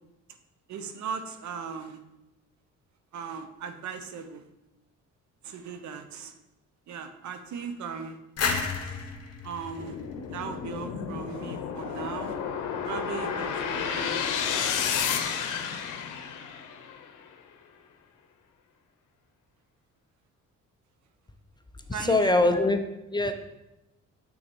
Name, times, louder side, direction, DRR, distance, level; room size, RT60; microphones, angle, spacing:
voice 1, 0.7-2.0 3.1-4.4 5.4-6.3 6.9-8.2 8.8-9.1 9.4-10.0 10.3-12.4 12.8-14.2 21.9-22.6, right 6 dB, 70° right, 8 dB, 0.8 m, -38 dB
sound 1, 8.4-11.1, left 5 dB, 55° left, 1.1 m, -32 dB
sound 2, 9.8-17.0, left 7 dB, 85° left, 0.8 m, -31 dB
voice 2, 22.0-23.3, left 2 dB, 15° left, 7 dB, 0.6 m, -23 dB
6.1 x 4.0 x 6.1 m, 0.93 s
cardioid pair, 90°, 30 cm